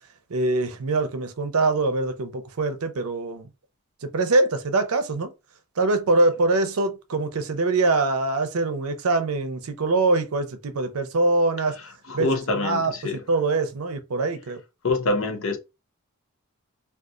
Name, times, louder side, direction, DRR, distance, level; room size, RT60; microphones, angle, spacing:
voice 1, 0.3-3.5 4.0-5.3 5.8-11.8 12.1-12.3 12.6-12.9 13.3-14.6, right 2 dB, 75° right, 0.6 m, -23 dB
voice 2, 12.1-13.2 14.8-15.6, left 3 dB, 60° left, 0.6 m, -25 dB
3.7 x 2.4 x 2.4 m
head